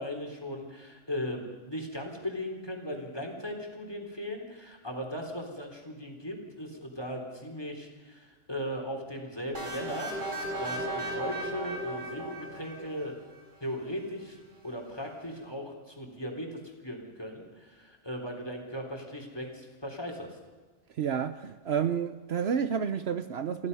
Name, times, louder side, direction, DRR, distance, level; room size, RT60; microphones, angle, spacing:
voice 1, 0.0-13.2 13.6-20.4, equal, 20° left, 3.8 m, -38 dB
sound 1, 9.5-13.3, right 1 dB, 85° right, 6.0 m, -36 dB
voice 2, 21.0-23.7, right 7 dB, 60° right, 1.0 m, -30 dB
30.0 x 16.0 x 5.5 m
omnidirectional pair, 1.2 m